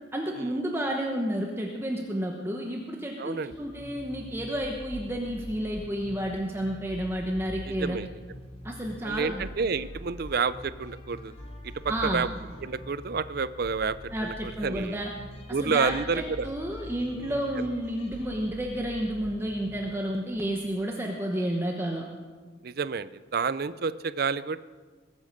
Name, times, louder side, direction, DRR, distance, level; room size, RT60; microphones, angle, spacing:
voice 1, 0.1-8.0 8.6-9.4 11.9-12.2 14.1-15.1 15.5-22.1, right 1 dB, 10° right, 1 dB, 1.0 m, -31 dB
voice 2, 3.2-3.5 7.8-8.1 9.0-11.3 11.6-12.3 12.6-15.0 15.5-16.5 17.2-17.4 22.6-24.6, right 5 dB, 50° right, 16 dB, 0.5 m, -29 dB
sound 1, 3.5-20.8, equal, 30° left, 2.5 m, -44 dB
21.0 x 8.6 x 6.6 m, 1.4 s
head